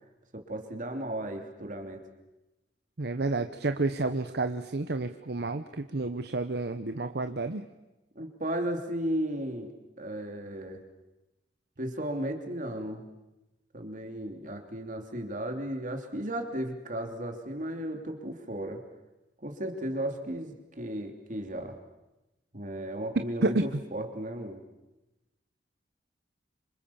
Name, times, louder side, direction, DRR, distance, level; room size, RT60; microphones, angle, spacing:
voice 1, 0.3-2.0 8.1-10.8 11.8-13.1 13.7-18.8 19.4-21.8 22.5-24.6, right 1 dB, 45° right, 5 dB, 3.1 m, -35 dB
voice 2, 3.0-7.7 23.4-23.6, right 2 dB, 65° right, 9 dB, 0.9 m, -30 dB
28.0 x 26.0 x 7.2 m, 1.0 s
head